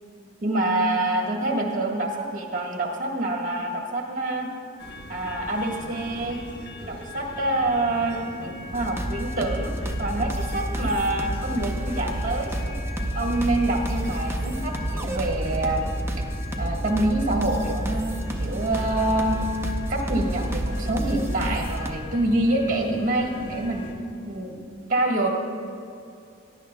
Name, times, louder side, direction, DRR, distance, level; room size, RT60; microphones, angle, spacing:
voice 1, 0.4-4.5 5.1-6.4 6.8-9.7 10.0-12.8 13.1-15.9 16.2-16.3 16.6-19.4 19.9-23.9 24.3-24.6 24.9-25.3, right 1 dB, 40° right, 0 dB, 1.5 m, -26 dB
sound 1, 4.8-23.9, left 1 dB, 50° left, 1.3 m, -40 dB
sound 2, 8.7-21.9, right 1 dB, 10° right, 0.6 m, -29 dB
17.0 x 10.5 x 2.3 m, 2.5 s
head